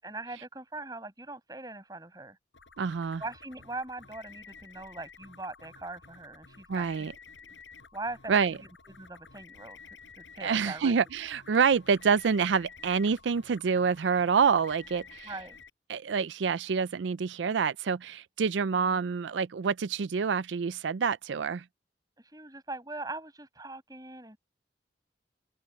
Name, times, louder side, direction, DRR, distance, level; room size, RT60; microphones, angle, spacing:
voice 1, 0.0-2.4 3.2-7.1 7.4-7.5 7.9-8.3 9.0-9.8 10.2-10.9 15.2-15.6 22.2-24.4, right 2 dB, 20° right, 7.8 m, -41 dB
sound 1, 2.5-15.7, left 5 dB, 85° left, 6.6 m, -52 dB
voice 2, 2.8-3.2 6.7-7.1 8.3-8.5 10.4-15.3 15.9-21.6, right 6 dB, 80° right, 0.4 m, -27 dB
head